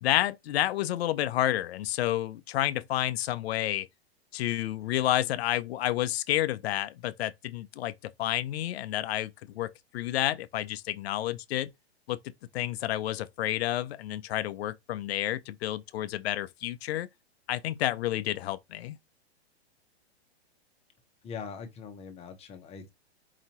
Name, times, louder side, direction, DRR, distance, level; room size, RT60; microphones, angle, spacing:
voice 1, 0.0-3.9 4.3-11.7 12.1-12.2 12.5-17.1 17.5-19.0, left 14 dB, 70° left, 0.6 m, -30 dB
voice 2, 21.2-22.9, left 6 dB, 20° left, 0.9 m, -42 dB
4.9 x 2.7 x 2.9 m
hypercardioid pair, 140°, 32 cm